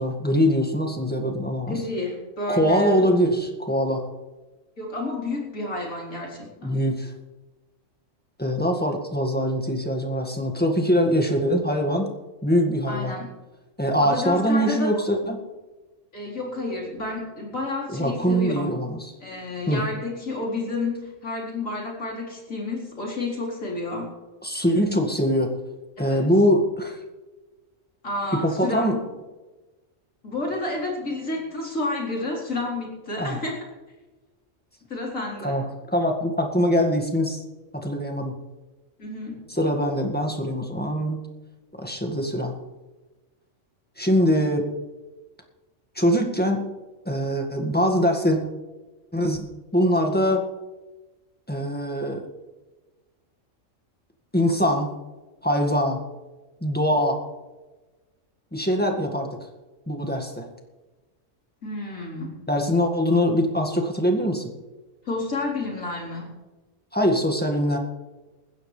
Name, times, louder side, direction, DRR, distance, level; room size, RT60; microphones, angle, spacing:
voice 1, 0.0-1.8 2.5-4.0 6.6-7.1 8.4-12.1 12.4-13.1 13.8-15.4 17.9-19.1 19.7-19.8 24.4-25.6 26.0-27.0 28.3-29.0 33.2-33.4 35.4-35.7 35.9-37.4 37.7-38.4 39.6-41.2 41.8-42.5 44.0-44.7 46.0-46.7 47.1-48.4 49.1-49.4 49.7-50.4 51.5-52.2 54.3-54.9 55.4-56.0 56.6-57.2 58.5-59.3 59.9-60.5 62.5-64.5 66.9-67.8, equal, 5° left, 2 dB, 1.9 m, -23 dB
voice 2, 1.6-3.0 4.8-6.8 12.9-13.3 14.0-15.0 16.1-18.7 19.2-24.1 26.0-26.2 28.0-29.1 30.2-33.6 34.9-35.6 39.0-39.5 61.6-62.4 65.0-66.3, left 2 dB, 85° left, -2 dB, 4.7 m, -30 dB
20.0 x 16.0 x 3.4 m, 1.2 s
omnidirectional pair, 1.3 m